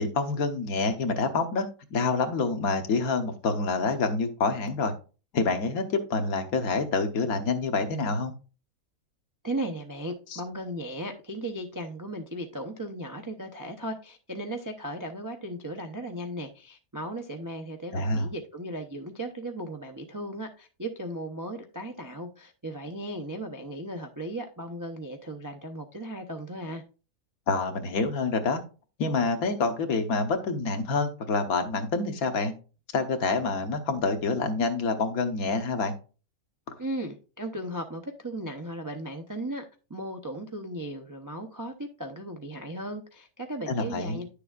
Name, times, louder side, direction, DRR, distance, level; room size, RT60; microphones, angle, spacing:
voice 1, 0.0-4.9 5.3-8.3 10.3-10.4 17.9-18.3 27.5-28.6 29.0-32.5 32.9-35.9 43.7-44.2, left 3 dB, 75° left, 1.4 m, -27 dB
voice 2, 9.4-26.8 36.8-39.6 39.9-44.3, right 1 dB, 30° right, 0.3 m, -36 dB
10.0 x 6.8 x 2.4 m
omnidirectional pair, 1.5 m